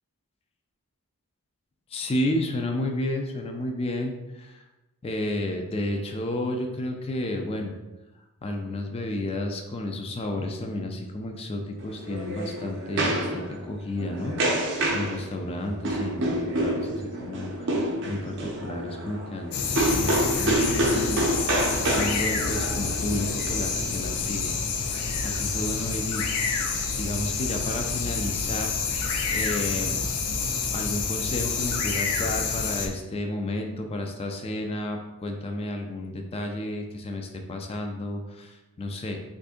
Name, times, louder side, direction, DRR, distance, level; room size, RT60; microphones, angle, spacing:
voice 1, 1.9-4.6 5.0-7.8 8.4-17.7 18.1-21.3 21.9-26.2 27.0-28.8 29.3-30.0 30.7-39.2, left 1 dB, 25° left, 3 dB, 0.4 m, -32 dB
sound 1, 11.8-24.3, right 1 dB, 55° right, 0.6 m, -28 dB
sound 2, 19.5-32.9, left 5 dB, 80° left, 0.5 m, -28 dB
3.3 x 2.6 x 3.6 m, 1.1 s
head